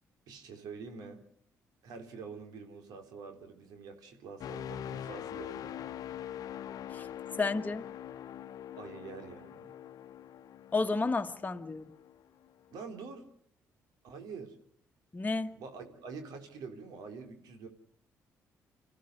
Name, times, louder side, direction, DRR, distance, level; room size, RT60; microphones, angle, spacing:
voice 1, 0.3-1.2 1.8-5.8 8.8-9.7 12.7-13.3 14.0-14.6 15.5-17.7, right 5 dB, 75° right, 3.6 m, -46 dB
sound 1, 4.4-12.2 12.7-12.9, left 10 dB, 65° left, 0.8 m, -43 dB
voice 2, 7.4-7.9 10.7-11.8 15.1-15.5, left 3 dB, 25° left, 1.7 m, -31 dB
26.0 x 15.0 x 7.8 m
supercardioid pair, 60°, 7 cm